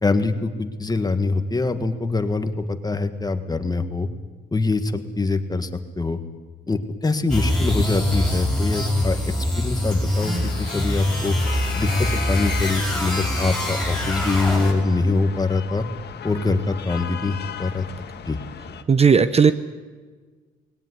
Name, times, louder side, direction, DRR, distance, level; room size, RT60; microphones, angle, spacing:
voice 1, 0.0-4.1 4.5-5.7 6.0-6.2 6.7-9.2 9.6-11.4 11.8-15.8 16.2-17.8 18.3-18.4, left 3 dB, 20° left, 8 dB, 1.8 m, -24 dB
sound 1, 7.3-15.0, left 1 dB, 5° left, 7.0 m, -24 dB
sound 2, 10.2-18.8, left 8 dB, 55° left, 1.6 m, -37 dB
voice 2, 18.9-19.5, right 6 dB, 30° right, 13 dB, 0.8 m, -15 dB
20.5 x 18.0 x 9.9 m, 1.4 s
cardioid pair, 90°, 20 cm